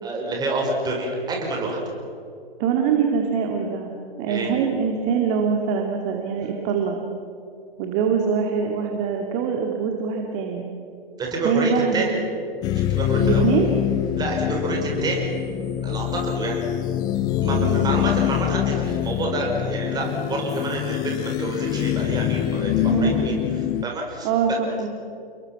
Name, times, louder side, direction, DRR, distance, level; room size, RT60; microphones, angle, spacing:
voice 1, 0.0-1.8 4.3-4.5 11.2-12.2 12.7-13.4 14.2-15.3 15.8-16.6 17.4-23.4 23.8-24.6, right 2 dB, 15° right, -1 dB, 5.7 m, -28 dB
voice 2, 2.6-3.9 4.2-7.0 7.8-10.7 11.4-12.1 13.2-13.7 17.4-17.8 22.8-23.4 24.2-24.9, right 6 dB, 30° right, 2 dB, 2.4 m, -23 dB
sound 1, 12.6-23.8, left 11 dB, 15° left, 0.5 m, -24 dB
29.5 x 22.5 x 6.0 m, 2.7 s
hypercardioid pair, 130°, 30 cm